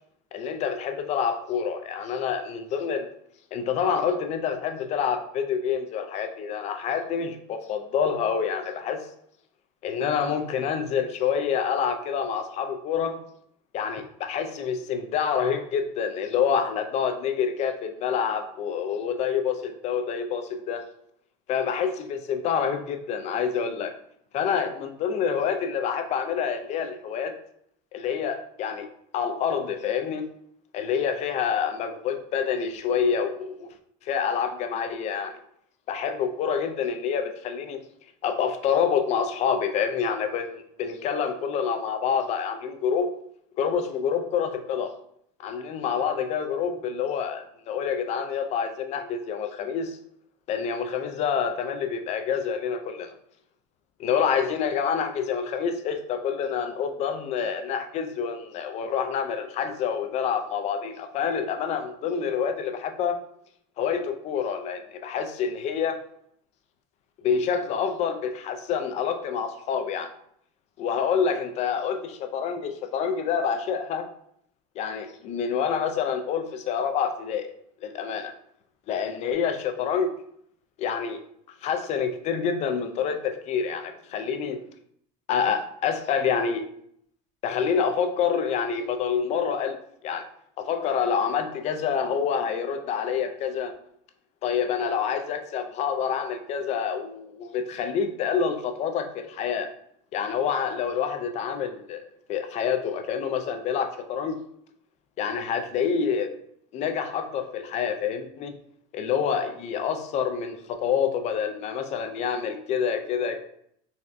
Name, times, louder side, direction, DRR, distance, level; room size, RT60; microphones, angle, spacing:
voice 1, 0.3-3.1 3.5-9.1 9.8-13.2 13.7-20.8 21.5-23.9 24.3-27.3 27.9-28.9 29.1-30.3 30.7-33.7 34.0-35.4 35.9-37.8 38.2-43.1 43.6-44.9 45.4-50.0 50.5-53.1 54.0-63.2 63.8-66.0 67.2-70.1 70.8-74.1 74.8-77.5 77.8-78.3 78.9-80.1 80.8-81.2 81.6-84.6 85.3-86.7 87.4-89.8 90.0-90.3 90.6-93.7 94.4-99.7 100.1-102.0 102.3-104.4 105.2-106.3 106.7-108.5 108.9-113.4, left 7 dB, 45° left, 6 dB, 0.4 m, -27 dB
4.0 x 2.2 x 2.5 m, 0.69 s
supercardioid pair, 120°, 16 cm